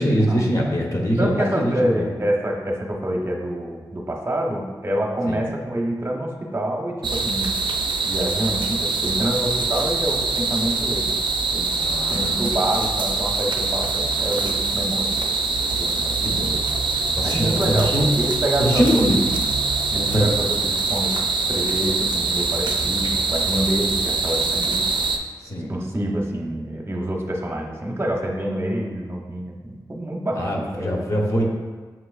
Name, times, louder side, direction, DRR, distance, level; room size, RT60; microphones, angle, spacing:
voice 1, 0.0-2.1 5.3-5.5 11.8-12.4 16.2-16.6 17.2-18.1 18.6-19.2 20.1-20.3 25.4-25.7 30.4-31.4, equal, 40° left, -2 dB, 0.9 m, -23 dB
voice 2, 1.2-7.6 8.0-11.2 11.5-16.3 17.2-19.1 19.9-24.9 25.7-30.8, right 1 dB, 30° right, -1 dB, 0.8 m, -27 dB
sound 1, 7.0-25.2, right 4 dB, 80° right, 0.4 m, -24 dB
7.3 x 3.0 x 2.4 m, 1.4 s
wide cardioid pair, 75°, 8 cm